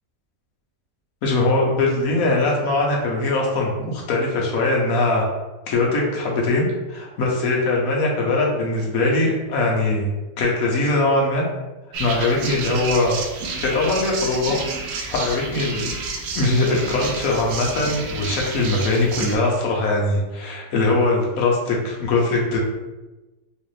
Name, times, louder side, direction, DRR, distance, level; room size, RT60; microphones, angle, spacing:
voice 1, 1.2-5.3 5.7-10.1 10.4-11.5 12.0-13.2 13.6-14.6 15.1-15.9 16.3-22.6, left 2 dB, 65° left, -2 dB, 1.2 m, -21 dB
sound 1, 11.9-19.4, right 3 dB, 85° right, 1.2 m, -30 dB
3.7 x 2.5 x 3.1 m, 1.1 s
omnidirectional pair, 1.8 m